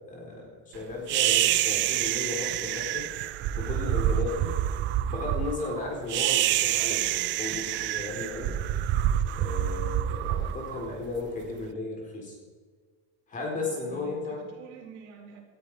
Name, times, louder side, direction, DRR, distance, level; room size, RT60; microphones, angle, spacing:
voice 1, 0.1-3.1 3.5-4.5 5.1-8.6 9.3-12.4 13.3-14.4, left 3 dB, 20° left, 0 dB, 4.2 m, -35 dB
sound 1, 1.1-11.4, right 13 dB, 35° right, 0.4 m, -27 dB
voice 2, 13.5-15.4, right 4 dB, 85° right, 1 dB, 4.5 m, -47 dB
18.5 x 13.0 x 4.9 m, 1.5 s
cardioid pair, 175°, 35 cm